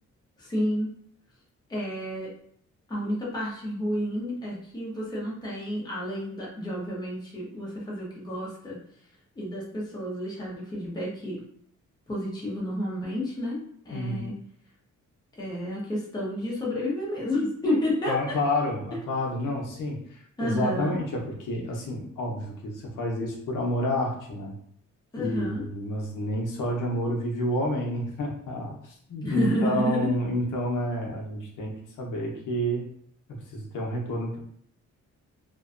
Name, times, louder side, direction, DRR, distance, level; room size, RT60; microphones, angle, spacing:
voice 1, 0.4-0.9 1.7-2.3 2.9-8.8 9.4-11.4 12.1-14.4 15.4-18.3 20.4-21.0 25.1-25.6 29.2-30.1, left 1 dB, 15° left, -6 dB, 0.6 m, -30 dB
voice 2, 13.9-14.3 18.1-24.5 25.2-32.8 33.5-34.4, left 1 dB, 85° left, -1 dB, 0.7 m, -29 dB
2.5 x 2.2 x 2.4 m, 0.65 s
wide cardioid pair, 175°, 31 cm